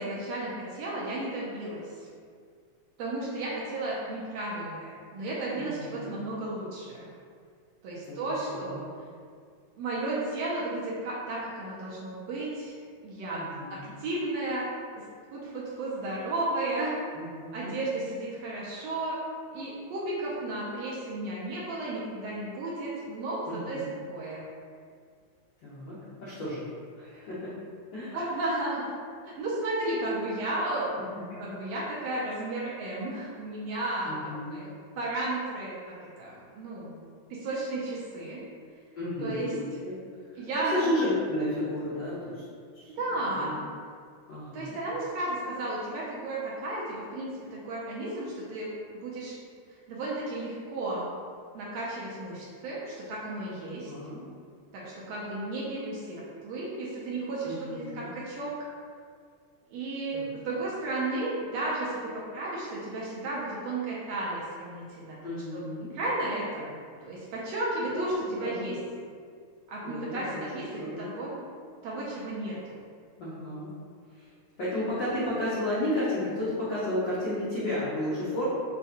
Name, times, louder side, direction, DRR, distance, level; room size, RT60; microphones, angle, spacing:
voice 1, 0.0-1.9 3.0-7.1 7.8-8.8 9.8-12.8 13.0-13.4 13.7-14.7 15.3-16.9 17.5-19.2 19.5-24.4 28.1-28.9 29.3-30.9 31.4-34.7 35.0-35.7 36.2-37.0 37.3-38.4 39.2-39.5 40.4-40.9 42.9-43.6 44.5-47.3 47.6-48.7 49.0-49.3 49.9-51.1 51.5-53.9 54.7-58.7 59.7-65.2 65.5-65.6 65.9-68.8 69.7-70.7 71.0-71.4 71.8-72.8, right 2 dB, 75° right, -6 dB, 1.6 m, -33 dB
voice 2, 5.5-6.1 8.0-8.8 13.3-13.9 17.1-17.7 23.5-23.8 25.6-26.6 27.0-27.5 27.9-28.2 34.1-34.6 38.9-39.9 40.3-42.4 42.7-42.9 43.3-43.6 44.3-44.7 53.6-54.2 57.4-58.1 60.1-60.2 65.2-65.9 67.9-68.1 68.4-68.8 69.8-70.4 70.8-71.1 73.2-73.7 74.2-74.3 74.6-78.5, left 1 dB, 90° left, -11 dB, 1.0 m, -33 dB
6.4 x 2.2 x 2.7 m, 2.1 s
omnidirectional pair, 3.4 m